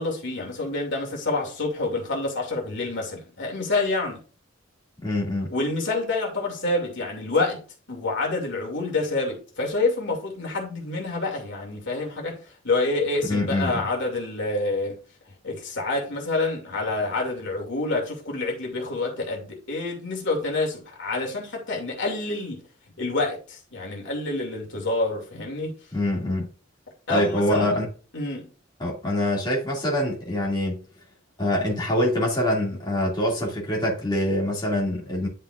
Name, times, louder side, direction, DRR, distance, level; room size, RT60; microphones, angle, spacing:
voice 1, 0.0-4.2 5.5-7.6 7.9-12.4 12.6-15.0 15.4-22.6 23.0-25.7 27.1-27.8 28.1-28.5, left 2 dB, 65° left, 2.5 m, -27 dB
voice 2, 5.0-5.5 13.3-13.8 25.9-26.5 27.1-27.8 28.8-30.8 31.4-35.3, left 1 dB, 25° left, 2.4 m, -25 dB
10.5 x 5.5 x 2.5 m
head